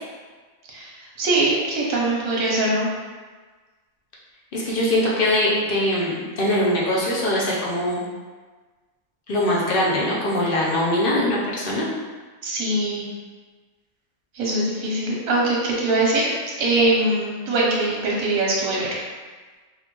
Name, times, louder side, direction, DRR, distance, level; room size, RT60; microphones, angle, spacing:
voice 1, 1.2-2.9 12.4-13.0 14.3-16.3 16.6-18.9, right 2 dB, 85° right, -4 dB, 1.3 m, -22 dB
voice 2, 4.5-8.0 9.3-11.9, left 1 dB, 50° left, -5 dB, 0.7 m, -22 dB
3.6 x 2.4 x 3.0 m, 1.4 s
omnidirectional pair, 1.4 m